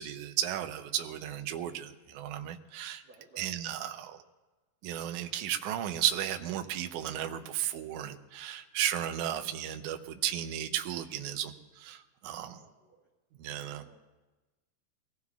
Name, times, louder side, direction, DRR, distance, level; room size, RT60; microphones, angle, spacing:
voice 1, 0.0-3.0 3.4-4.2 4.8-12.6 13.4-13.8, right 11 dB, 80° right, 6 dB, 1.8 m, -34 dB
voice 2, 3.0-3.5 12.4-13.1 13.8-14.0, right 3 dB, 60° right, -4 dB, 1.0 m, -58 dB
24.0 x 17.0 x 2.4 m, 1.1 s
omnidirectional pair, 4.4 m